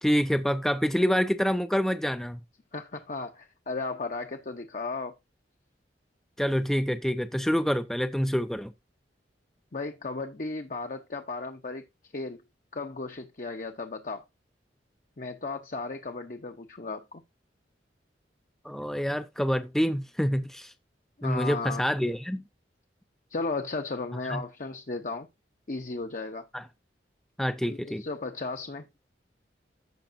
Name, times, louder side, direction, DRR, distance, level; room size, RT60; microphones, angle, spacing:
voice 1, 0.0-2.4 6.4-8.7 18.6-20.7 21.2-22.4 24.3-24.4 26.5-26.6 27.4-28.0, equal, ahead, 0.4 m, -27 dB
voice 2, 2.7-5.1 9.7-11.9 12.1-12.4 12.7-14.2 15.2-17.2 21.2-21.9 23.3-25.3 25.7-26.5 27.7-28.9, left 3 dB, 45° left, 0.8 m, -35 dB
15.0 x 5.3 x 2.6 m
head